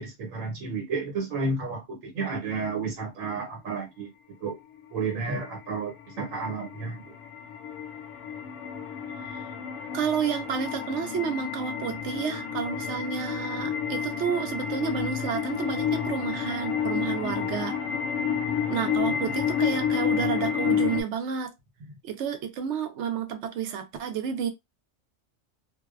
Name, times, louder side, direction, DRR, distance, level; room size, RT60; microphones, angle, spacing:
voice 1, 0.0-4.1 4.4-4.6 4.9-7.0, right 4 dB, 90° right, 1.2 m, -31 dB
sound 1, 4.8-21.0, left 7 dB, 75° left, 0.9 m, -30 dB
voice 2, 9.1-9.5 9.9-17.8 18.7-21.5 22.0-24.5, right 7 dB, 70° right, 0.8 m, -30 dB
2.5 x 2.1 x 2.3 m
omnidirectional pair, 1.3 m